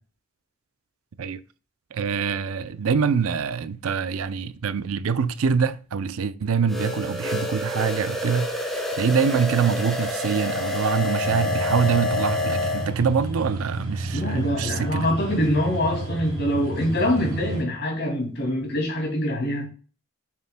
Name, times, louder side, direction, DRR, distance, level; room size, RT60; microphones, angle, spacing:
voice 1, 1.9-8.7 8.9-15.1, right 6 dB, 75° right, 0.5 m, -25 dB
sound 1, 6.7-12.9, left 2 dB, ahead, 0.9 m, -28 dB
sound 2, 11.2-17.6, right 2 dB, 35° right, 3.1 m, -31 dB
voice 2, 14.1-19.7, left 1 dB, 50° left, 2.4 m, -24 dB
6.7 x 6.7 x 2.2 m
head